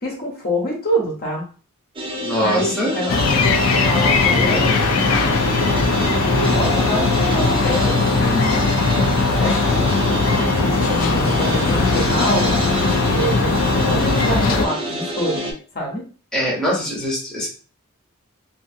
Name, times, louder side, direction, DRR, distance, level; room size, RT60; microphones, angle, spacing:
voice 1, 0.0-1.4 2.4-5.2 6.0-12.8 13.1-16.0, equal, 45° left, -1 dB, 0.8 m, -26 dB
sound 1, 2.0-15.5, right 1 dB, 25° right, 0.5 m, -27 dB
voice 2, 2.2-3.0 16.3-17.5, equal, 5° left, -6 dB, 0.8 m, -22 dB
sound 2, 3.1-14.6, left 4 dB, 65° left, 0.4 m, -19 dB
2.6 x 2.5 x 2.5 m, 0.40 s
head